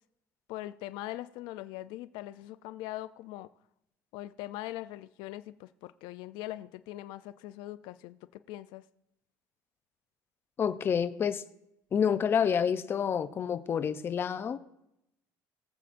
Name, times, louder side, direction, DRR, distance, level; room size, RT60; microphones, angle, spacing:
voice 1, 0.5-3.5 4.1-8.8, left 15 dB, 80° left, 0.4 m, -41 dB
voice 2, 10.6-11.4 11.9-14.6, left 7 dB, 30° left, 0.5 m, -28 dB
21.0 x 7.7 x 2.5 m
cardioid pair, 150°, 8 cm